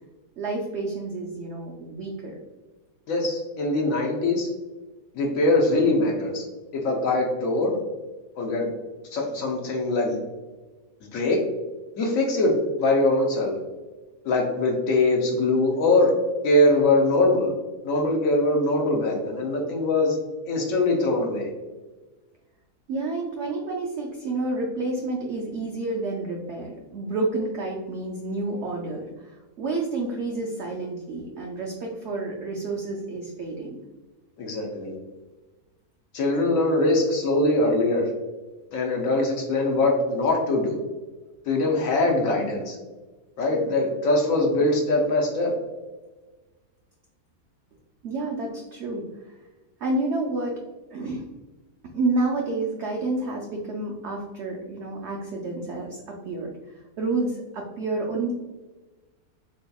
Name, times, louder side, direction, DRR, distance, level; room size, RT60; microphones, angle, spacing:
voice 1, 0.4-2.4 22.9-33.8 48.0-49.4 49.8-50.5 50.9-51.2 51.9-58.3, right 2 dB, 90° right, 0 dB, 0.6 m, -29 dB
voice 2, 3.1-4.5 5.1-6.4 6.8-7.8 8.4-8.7 9.1-10.2 11.1-11.4 12.0-13.6 14.2-16.1 16.4-17.5 17.8-20.2 20.4-21.5 34.4-34.9 36.1-38.1 38.7-40.8 41.5-42.8 43.4-45.5, left 2 dB, 65° left, 0 dB, 1.0 m, -22 dB
4.2 x 2.7 x 2.2 m, 1.2 s
omnidirectional pair, 1.7 m